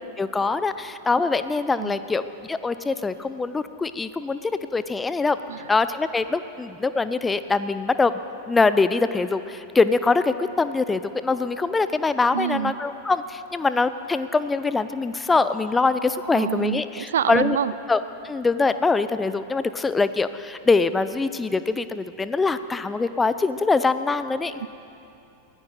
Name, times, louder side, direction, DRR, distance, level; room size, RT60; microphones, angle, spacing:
voice 1, 0.2-5.4 5.7-8.1 8.5-17.6 17.9-24.5, left 4 dB, 10° left, 13 dB, 0.6 m, -23 dB
voice 2, 12.3-12.7 16.3-17.7 24.6-24.7, right 9 dB, 65° right, 16 dB, 0.4 m, -26 dB
22.5 x 15.5 x 4.1 m, 2.7 s
figure-of-eight pair, 90°, 0 cm